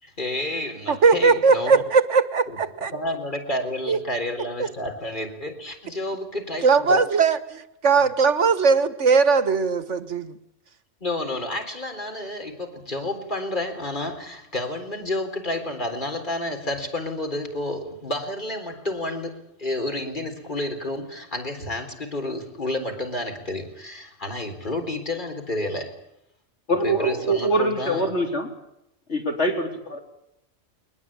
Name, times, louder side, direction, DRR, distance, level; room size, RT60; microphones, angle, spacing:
voice 1, 0.0-1.8 2.5-2.6 2.9-7.0 11.0-25.9 26.8-28.1, left 1 dB, 40° left, 5 dB, 4.1 m, -30 dB
voice 2, 0.9-2.9 3.9-4.0 4.6-4.7 6.6-10.4, right 5 dB, 75° right, 12 dB, 1.6 m, -19 dB
voice 3, 26.7-28.5 29.1-30.0, right 1 dB, 65° left, 2 dB, 4.4 m, -24 dB
22.5 x 20.5 x 8.8 m, 0.81 s
omnidirectional pair, 1.3 m